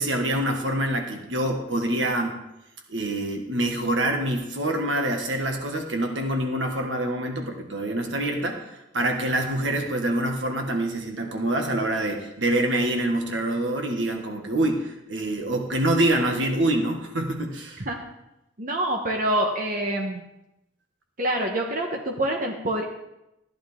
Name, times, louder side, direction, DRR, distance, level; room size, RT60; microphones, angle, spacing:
voice 1, 0.0-2.4 2.9-17.8, right 1 dB, 85° right, 3 dB, 1.7 m, -26 dB
voice 2, 18.6-20.2 21.2-22.8, right 1 dB, 50° right, 1 dB, 1.2 m, -26 dB
14.5 x 10.5 x 3.6 m, 0.88 s
head